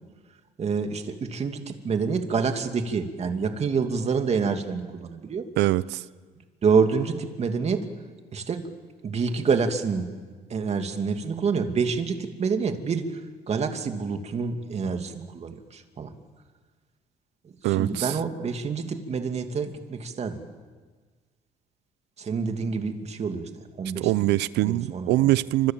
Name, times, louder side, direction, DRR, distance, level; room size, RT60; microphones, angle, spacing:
voice 1, 0.6-5.5 6.6-7.9 8.3-8.7 9.0-10.1 10.5-13.1 13.5-16.1 17.6-20.4 22.2-23.5 23.8-24.3 24.6-25.3, right 5 dB, 40° right, 2.6 m, -27 dB
voice 2, 5.6-6.0 17.6-18.2 24.0-25.7, right 17 dB, 85° right, 0.7 m, -23 dB
29.5 x 26.0 x 7.4 m
cardioid pair, 110°, 17 cm